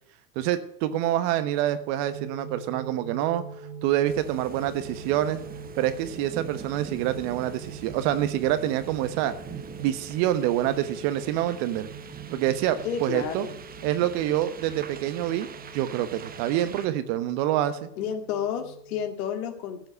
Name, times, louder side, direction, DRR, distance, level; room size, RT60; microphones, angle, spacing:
voice 1, 0.3-3.4 3.8-5.4 5.8-9.3 9.8-11.9 12.3-13.5 13.8-15.5 15.7-17.9, right 12 dB, 50° right, 11 dB, 1.3 m, -26 dB
sound 1, 2.0-19.1, right 3 dB, 75° right, 2.8 m, -44 dB
sound 2, 4.0-16.9, right 7 dB, 20° right, 0.9 m, -43 dB
voice 2, 12.8-13.5 18.0-19.9, left 8 dB, 65° left, 6 dB, 2.2 m, -31 dB
14.5 x 5.8 x 8.3 m, 0.71 s
hypercardioid pair, 105°, 48 cm